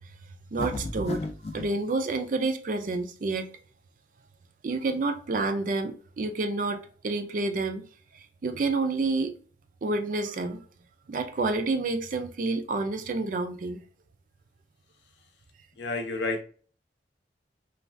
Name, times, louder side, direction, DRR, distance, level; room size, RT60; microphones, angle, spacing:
voice 1, 0.5-1.3 1.5-3.5 4.6-7.8 8.1-9.3 9.8-10.6 11.1-13.8, right 3 dB, 45° right, 0.4 m, -29 dB
sound 1, 0.6-1.7, left 2 dB, 35° left, 0.4 m, -33 dB
voice 2, 15.8-16.4, left 3 dB, 70° left, 0.6 m, -30 dB
2.6 x 2.3 x 3.1 m
head